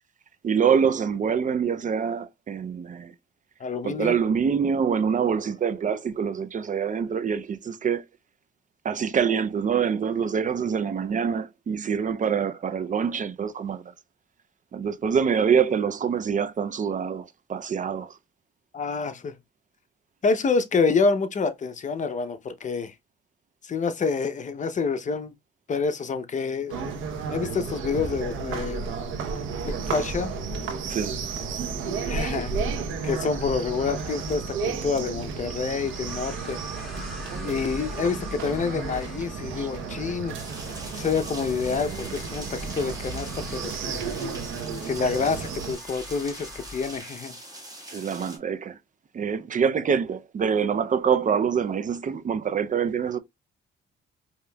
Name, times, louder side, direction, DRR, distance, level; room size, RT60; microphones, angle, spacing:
voice 1, 0.4-3.1 3.8-8.0 8.8-13.9 14.7-18.2 30.9-31.1 37.3-37.6 39.6-39.7 47.9-48.8 49.1-53.2, right 7 dB, 40° right, 0.5 m, -25 dB
voice 2, 3.6-4.2 18.7-19.3 20.2-22.9 23.6-25.3 25.7-26.8 27.3-28.9 29.6-30.3 32.1-32.5 33.0-36.6 37.4-40.4 41.0-44.1 44.8-47.4, left 5 dB, 40° left, 0.7 m, -27 dB
sound 1, 26.7-45.8, right 5 dB, 85° right, 0.9 m, -33 dB
sound 2, 29.8-47.0, left 1 dB, ahead, 2.0 m, -43 dB
sound 3, 40.3-48.4, right 1 dB, 20° right, 1.7 m, -42 dB
4.9 x 2.8 x 2.3 m
cardioid pair, 90°, 20 cm